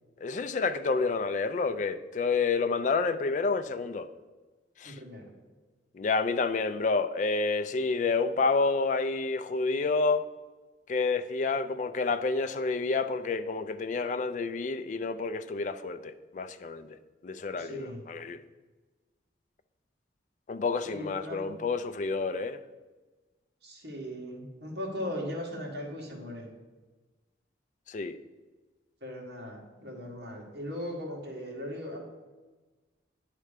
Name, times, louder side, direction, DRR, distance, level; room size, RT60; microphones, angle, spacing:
voice 1, 0.2-4.1 4.8-5.0 5.9-10.3 10.9-17.0 17.2-18.4 20.5-22.6 27.9-28.2, left 4 dB, 40° left, 11 dB, 0.3 m, -29 dB
voice 2, 4.8-5.3 17.5-18.0 20.8-21.5 23.6-26.5 29.0-32.0, equal, 60° right, -2 dB, 1.6 m, -38 dB
9.7 x 3.3 x 5.0 m, 1.3 s
head